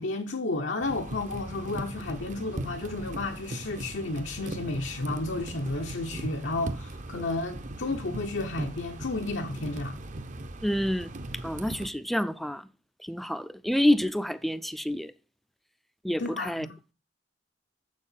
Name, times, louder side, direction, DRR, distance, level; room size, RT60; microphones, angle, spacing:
voice 1, 0.0-10.0 16.2-16.7, left 2 dB, 85° left, 0.9 m, -32 dB
sound 1, 0.8-11.9, right 1 dB, 40° right, 0.7 m, -39 dB
voice 2, 10.6-11.1 11.4-12.7 13.0-15.1 16.0-16.7, left 1 dB, ahead, 0.4 m, -28 dB
7.3 x 6.4 x 5.6 m
head